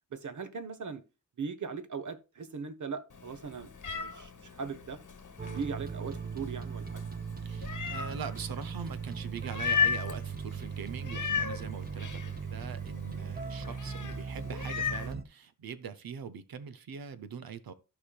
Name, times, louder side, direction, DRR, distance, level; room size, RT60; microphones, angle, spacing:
voice 1, 0.1-1.0 1.4-5.0 5.4-7.0, right 5 dB, 60° right, 1.0 m, -39 dB
Meow, 3.1-15.1, left 6 dB, 60° left, 1.1 m, -37 dB
sound 1, 5.4-15.2, right 6 dB, 25° right, 0.6 m, -39 dB
voice 2, 7.4-17.7, right 6 dB, 85° right, 0.8 m, -42 dB
14.5 x 5.0 x 2.3 m
wide cardioid pair, 75°, 35 cm